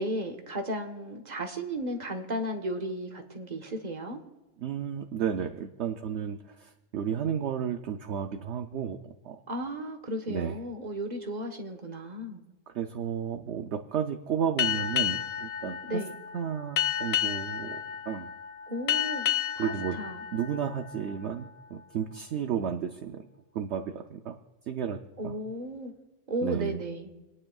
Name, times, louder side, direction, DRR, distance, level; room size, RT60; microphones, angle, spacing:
voice 1, 0.0-4.2 9.5-12.4 15.9-16.1 18.7-19.3 19.6-20.2 25.2-25.9 26.3-27.1, right 1 dB, 35° right, 3 dB, 1.3 m, -34 dB
voice 2, 4.6-9.0 9.2-9.4 10.3-10.6 12.7-16.0 16.3-18.3 19.6-20.0 20.3-23.3 23.5-24.4 24.7-25.4 26.4-26.8, right 8 dB, 65° right, 6 dB, 0.9 m, -32 dB
Boat Water vehicle, 14.6-21.6, left 10 dB, 80° left, 1.1 m, -32 dB
28.5 x 9.8 x 2.3 m, 1.1 s
omnidirectional pair, 1.4 m